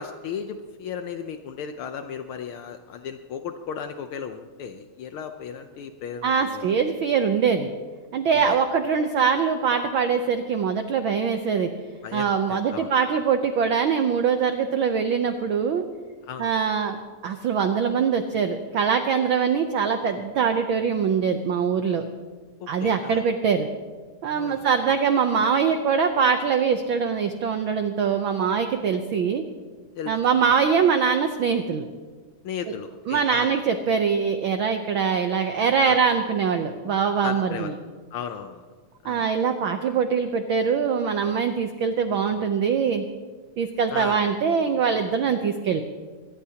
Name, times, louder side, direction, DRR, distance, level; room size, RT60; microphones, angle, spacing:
voice 1, 0.0-6.8 8.3-8.6 12.0-12.9 16.2-16.5 22.6-23.2 24.3-25.0 29.9-30.2 32.4-33.6 35.8-36.0 37.2-37.7 38.1-38.7 39.0-39.3 43.9-44.2, left 7 dB, 85° left, 7 dB, 1.1 m, -35 dB
voice 2, 6.2-7.7 8.1-11.7 12.1-15.8 16.4-17.0 17.2-22.0 22.7-23.7 24.2-29.4 30.1-31.9 33.1-37.7 39.0-43.0 43.6-45.8, right 6 dB, 85° right, 7 dB, 1.1 m, -23 dB
22.5 x 20.5 x 2.9 m, 1.5 s
omnidirectional pair, 3.3 m